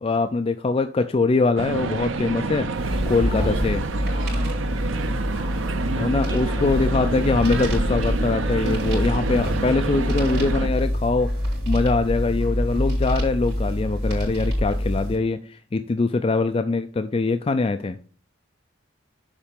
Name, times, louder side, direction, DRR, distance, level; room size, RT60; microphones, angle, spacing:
voice 1, 0.0-3.8 6.0-11.3 11.7-18.0, left 3 dB, 30° left, 9 dB, 0.3 m, -23 dB
sound 1, 1.6-10.7, right 3 dB, 80° right, 0.7 m, -28 dB
sound 2, 2.7-15.2, equal, 55° right, 4.0 m, -26 dB
voice 2, 3.2-3.7 4.1-4.7 5.3-7.8, equal, 15° right, -2 dB, 2.4 m, -40 dB
7.3 x 4.8 x 5.2 m, 0.41 s
head